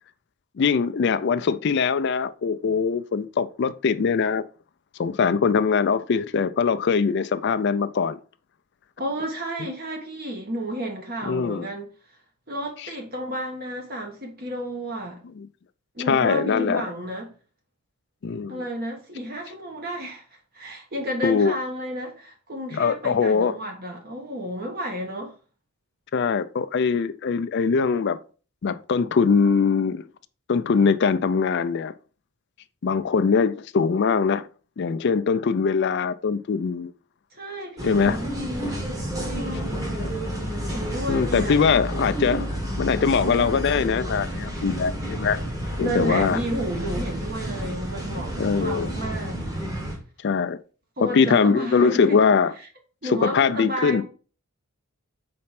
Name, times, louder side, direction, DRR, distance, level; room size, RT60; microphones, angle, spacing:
voice 1, 0.6-4.4 5.0-8.2 11.3-11.7 15.4-15.5 16.1-16.8 18.2-18.6 21.2-21.5 22.7-23.5 26.1-28.2 28.6-30.1 30.5-31.9 32.8-34.5 34.8-36.9 37.8-38.2 40.0-40.1 41.1-42.5 42.8-45.4 45.8-46.4 48.4-48.9 50.2-50.6 51.0-52.5 53.0-54.0, left 5 dB, 50° left, 0.4 m, -22 dB
voice 2, 9.0-11.9 12.5-15.2 15.9-17.3 18.5-20.3 20.5-25.3 37.3-38.7 39.2-39.7 40.7-41.6 45.8-49.5 51.0-52.2 53.0-54.0, equal, 40° right, 1.3 m, -32 dB
sound 1, 37.8-50.0, equal, 15° right, 1.4 m, -30 dB
4.3 x 4.3 x 5.7 m
head